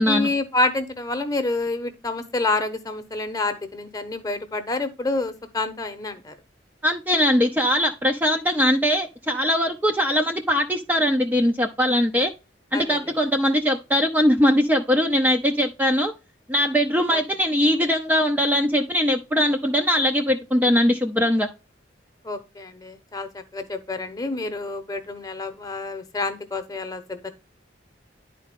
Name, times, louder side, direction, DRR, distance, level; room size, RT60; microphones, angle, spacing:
voice 1, 0.1-6.3 12.7-13.0 17.1-17.2 22.2-27.3, left 2 dB, 20° left, 8 dB, 1.0 m, -28 dB
voice 2, 6.8-12.3 12.7-16.1 16.5-21.5, equal, 10° right, 2 dB, 0.5 m, -21 dB
10.5 x 4.2 x 3.6 m, 0.28 s
head